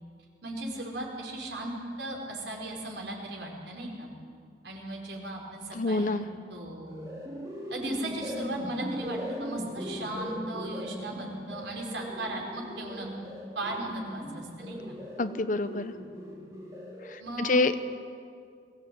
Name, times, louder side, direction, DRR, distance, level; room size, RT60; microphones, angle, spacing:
voice 1, 0.4-4.1 4.6-6.1 6.5-7.1 7.7-13.1 13.5-14.9 17.2-17.6, right 1 dB, 80° right, 0 dB, 4.9 m, -37 dB
voice 2, 5.7-6.3 15.2-15.9 17.1-17.9, left 2 dB, 45° left, 11 dB, 0.9 m, -27 dB
sound 1, 6.7-17.2, equal, 20° right, 4.2 m, -39 dB
22.5 x 17.0 x 8.6 m, 2.2 s
head